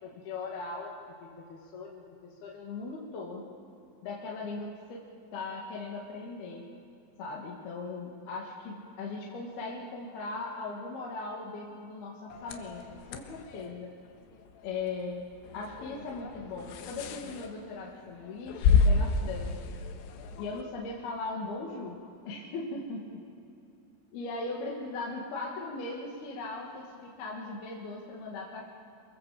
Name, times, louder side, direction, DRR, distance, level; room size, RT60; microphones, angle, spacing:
voice 1, 0.0-3.5 4.0-5.0 5.3-6.7 7.2-14.0 14.6-19.8 20.4-23.2 24.1-28.7, left 3 dB, 55° left, -3 dB, 3.7 m, -39 dB
sound 1, 12.3-20.6, left 5 dB, 85° left, 4.0 m, -31 dB
28.5 x 24.0 x 7.7 m, 2.6 s
omnidirectional pair, 5.9 m